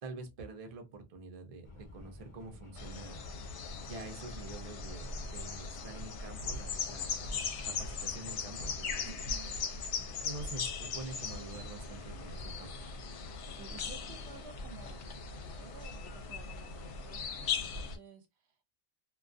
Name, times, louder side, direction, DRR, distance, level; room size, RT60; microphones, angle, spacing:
voice 1, 0.0-3.2 3.8-9.0 10.1-12.7, right 3 dB, 45° right, 0.5 m, -46 dB
sound 1, 1.6-8.9, left 2 dB, 30° left, 0.8 m, -54 dB
sound 2, 2.8-18.0, left 5 dB, 75° left, 0.9 m, -39 dB
voice 2, 9.0-9.5 13.2-18.6, right 5 dB, 70° right, 0.8 m, -53 dB
2.3 x 2.2 x 2.4 m
omnidirectional pair, 1.2 m